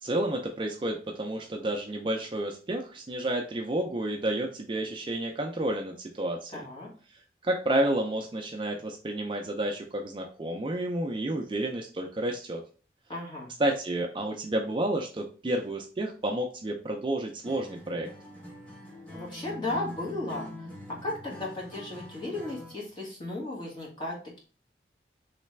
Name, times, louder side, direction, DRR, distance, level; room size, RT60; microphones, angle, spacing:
voice 1, 0.0-6.6 7.1-12.6 13.6-18.1, right 1 dB, 25° right, 3 dB, 0.4 m, -30 dB
voice 2, 6.5-6.9 13.1-13.5 19.1-24.4, left 2 dB, 25° left, -3 dB, 1.3 m, -35 dB
Acoustic guitar, 17.4-22.8, left 1 dB, 5° left, 0.9 m, -44 dB
3.2 x 3.2 x 3.1 m, 0.38 s
head